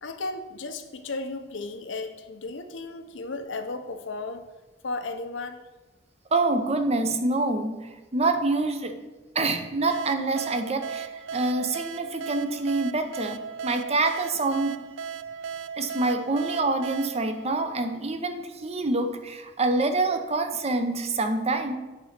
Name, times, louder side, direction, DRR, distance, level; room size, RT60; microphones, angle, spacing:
voice 1, 0.0-4.4 4.8-5.6, left 3 dB, 80° left, 8 dB, 0.8 m, -34 dB
voice 2, 6.3-9.0 9.3-14.8 15.8-21.8, right 2 dB, 35° right, 7 dB, 0.7 m, -26 dB
sound 1, 9.9-18.3, right 7 dB, 90° right, 0.4 m, -37 dB
8.4 x 4.1 x 5.9 m, 1.2 s
head